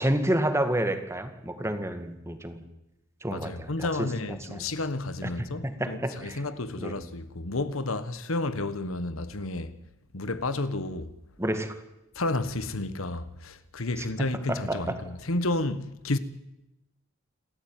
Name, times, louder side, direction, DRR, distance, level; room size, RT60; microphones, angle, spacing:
voice 1, 0.0-2.6 3.2-4.1 4.5-4.6 5.6-6.4 6.8-7.0 11.4-11.7 14.5-14.8, right 1 dB, 15° right, 2.0 m, -29 dB
voice 2, 3.3-9.8 10.1-11.1 12.1-16.2, left 2 dB, 80° left, 1.4 m, -31 dB
28.5 x 13.5 x 9.1 m
head